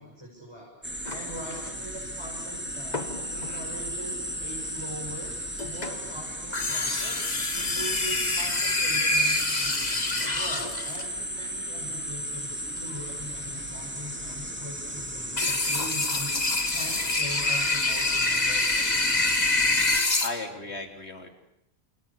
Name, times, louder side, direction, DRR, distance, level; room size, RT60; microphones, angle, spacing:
voice 1, 0.0-19.7, equal, 25° right, -2 dB, 6.5 m, -42 dB
sound 1, 0.8-20.0, equal, 10° right, 3.2 m, -35 dB
sound 2, 1.1-1.7 2.9-3.5 5.6-6.1 6.5-11.0 15.4-20.3, left 2 dB, 40° left, 2.1 m, -26 dB
voice 2, 20.2-21.3, left 3 dB, 90° left, 4 dB, 3.8 m, -37 dB
30.0 x 27.5 x 7.1 m, 0.77 s
omnidirectional pair, 1.1 m